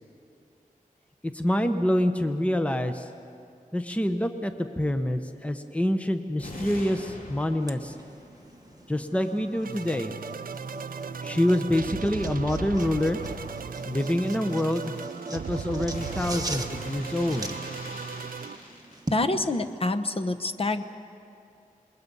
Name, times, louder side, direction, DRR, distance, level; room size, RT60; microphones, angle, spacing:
voice 1, 1.2-3.1 3.7-7.9 8.9-10.1 11.2-13.2 13.8-14.9 15.3-17.5, left 1 dB, 10° left, 7 dB, 0.9 m, -26 dB
sound 1, 6.4-19.3 19.6-19.7, left 1 dB, 75° left, 3.2 m, -45 dB
sound 2, 7.6-19.2, right 2 dB, 25° right, 1.3 m, -41 dB
sound 3, 9.2-18.6, right 6 dB, 90° right, 0.5 m, -37 dB
voice 2, 19.1-20.8, left 2 dB, 40° left, 8 dB, 1.0 m, -26 dB
27.5 x 21.5 x 5.5 m, 2.5 s
wide cardioid pair, 95°, 14 cm